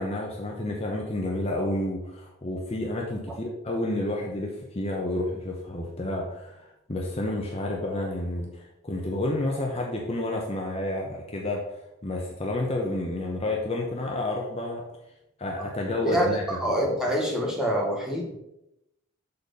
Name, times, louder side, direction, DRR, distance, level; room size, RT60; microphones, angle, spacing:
voice 1, 0.0-14.8 15.4-16.4, left 1 dB, 30° left, -1 dB, 0.8 m, -30 dB
voice 2, 16.0-18.4, equal, 5° right, -3 dB, 1.3 m, -26 dB
6.7 x 4.3 x 5.3 m, 0.86 s
head